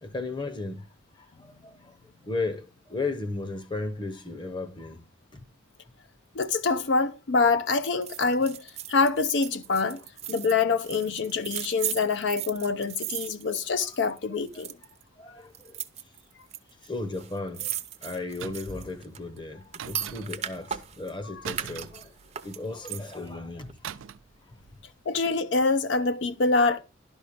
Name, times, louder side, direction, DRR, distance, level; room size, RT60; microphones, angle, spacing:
voice 1, 0.0-0.9 1.1-2.0 2.2-5.0 5.3-5.5 13.8-13.9 14.5-14.7 15.2-15.8 16.8-17.8 18.0-22.1 22.4-24.1 24.5-24.6, left 3 dB, 25° left, 0.9 m, -35 dB
voice 2, 6.4-10.0 10.3-14.7 25.1-26.8, left 4 dB, 60° left, 0.5 m, -25 dB
sound 1, 8.0-14.2 14.5-15.0 15.5-16.6 16.8-16.9 17.1-21.1 21.5-23.3 23.7-23.8, right 10 dB, 30° right, 0.6 m, -37 dB
sound 2, 18.4-18.9 19.8-20.6 21.4-22.6 23.8-24.4 24.6-24.8, right 9 dB, 80° right, 0.4 m, -40 dB
11.5 x 5.4 x 5.0 m
head